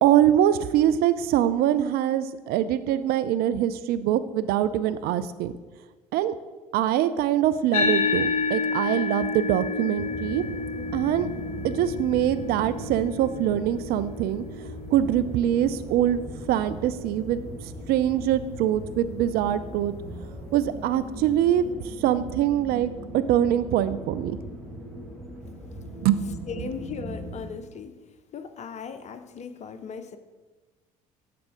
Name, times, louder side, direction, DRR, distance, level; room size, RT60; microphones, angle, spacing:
voice 1, 0.0-5.5 6.1-6.3 6.7-10.4 10.9-11.3 11.6-14.4 14.9-17.4 17.9-19.9 20.5-24.4 26.0-26.7, right 11 dB, 55° right, 13 dB, 0.4 m, -24 dB
sound 1, 7.7-16.5, left 4 dB, 80° left, 0.6 m, -30 dB
sound 2, 10.0-27.5, equal, ahead, 1.9 m, -39 dB
voice 2, 26.5-27.9 28.3-30.2, left 6 dB, 40° left, 10 dB, 0.6 m, -37 dB
7.5 x 3.5 x 4.9 m, 1.2 s
hypercardioid pair, 60°, 19 cm